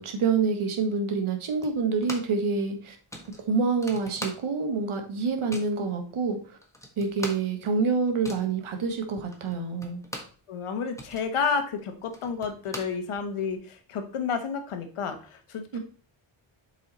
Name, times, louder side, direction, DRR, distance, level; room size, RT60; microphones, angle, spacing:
voice 1, 0.0-3.0 3.5-6.4 7.0-10.0 15.7-15.8, right 4 dB, 75° right, 5 dB, 1.7 m, -27 dB
sound 1, 1.6-2.5 2.7-2.8 3.1-4.8 5.1-5.8 6.3-6.4 6.6-10.4 10.8-13.5, left 1 dB, 5° left, 1.4 m, -42 dB
voice 2, 10.5-15.8, left 5 dB, 85° left, 7 dB, 1.4 m, -31 dB
7.6 x 4.9 x 4.2 m, 0.40 s
wide cardioid pair, 130°, 49 cm